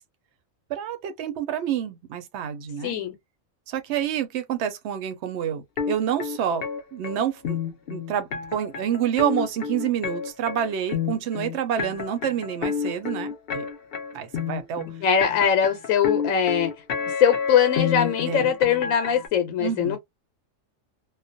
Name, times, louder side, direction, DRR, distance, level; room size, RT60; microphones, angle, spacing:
voice 1, 0.7-3.0 3.7-6.6 6.9-7.6 7.9-13.6 14.1-14.8 18.3-18.5 19.6-20.0, right 9 dB, 65° right, 0.8 m, -28 dB
voice 2, 2.8-3.1 15.0-16.7 17.2-20.0, left 8 dB, 80° left, 1.0 m, -21 dB
sound 1, 5.8-19.3, left 6 dB, 60° left, 0.7 m, -29 dB
2.3 x 2.1 x 2.5 m
omnidirectional pair, 1.4 m